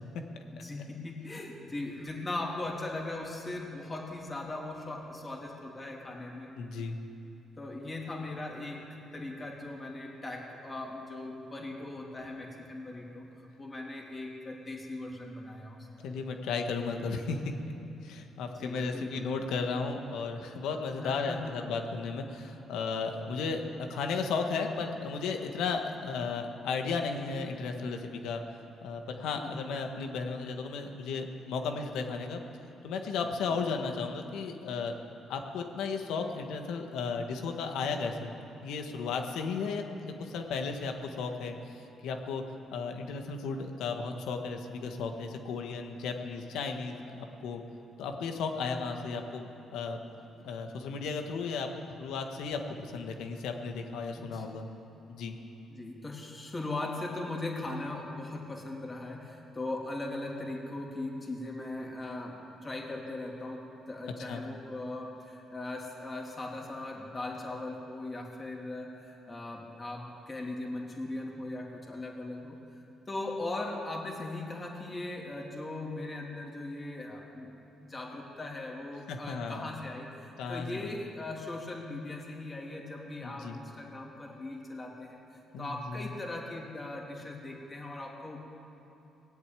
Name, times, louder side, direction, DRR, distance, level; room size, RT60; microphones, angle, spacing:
voice 1, 0.5-6.5 7.6-16.1 18.5-19.3 21.0-21.7 29.3-29.7 33.5-33.6 54.2-54.4 55.7-72.6 73.1-85.2 85.6-88.4, left 2 dB, 25° left, -1 dB, 3.0 m, -39 dB
voice 2, 6.6-7.0 16.0-17.5 18.0-23.6 23.9-28.4 28.8-32.4 32.8-34.9 35.3-38.3 38.6-41.6 42.0-42.4 42.7-47.6 48.0-50.0 50.4-51.7 52.0-54.7 55.1-55.3 64.3-64.4 79.1-79.7 80.4-80.9 83.2-83.6 85.5-86.0, left 4 dB, 85° left, 4 dB, 1.5 m, -34 dB
19.0 x 8.1 x 9.1 m, 2.9 s
cardioid pair, 90°, 0 cm